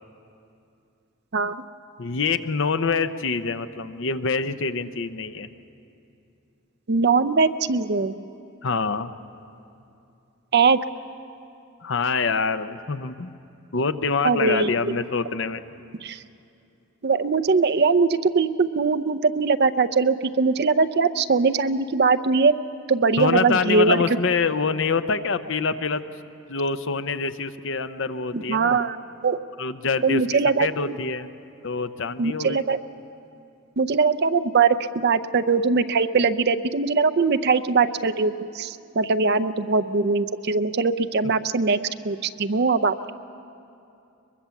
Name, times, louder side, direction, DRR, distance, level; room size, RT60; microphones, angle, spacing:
voice 1, 2.0-5.5 8.6-9.1 11.8-13.3 13.7-15.6 23.2-26.0 26.5-28.8 29.6-30.2 30.6-31.3 31.6-32.6, left 4 dB, 65° left, 11 dB, 0.8 m, -25 dB
voice 2, 6.9-8.2 10.5-10.8 14.2-14.9 16.0-16.2 17.0-22.5 22.9-24.0 28.3-29.0 29.2-29.4 30.0-31.0 32.2-32.8 33.8-41.8 42.0-43.0, right 4 dB, 55° right, 11 dB, 0.6 m, -21 dB
22.5 x 22.5 x 7.1 m, 2.7 s
head